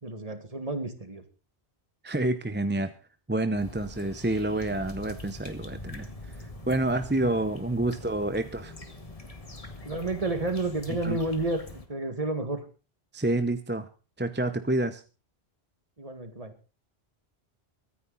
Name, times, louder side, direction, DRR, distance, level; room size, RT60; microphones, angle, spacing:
voice 1, 0.0-1.2 9.9-12.6 16.0-16.5, right 2 dB, 35° right, 8 dB, 2.0 m, -31 dB
voice 2, 2.0-2.9 3.3-8.7 11.0-11.2 13.1-13.9 14.2-15.0, right 2 dB, 10° right, 10 dB, 0.7 m, -28 dB
sound 1, 3.6-11.9, left 1 dB, 35° left, 2.0 m, -43 dB
23.5 x 9.8 x 4.1 m, 0.34 s
omnidirectional pair, 1.1 m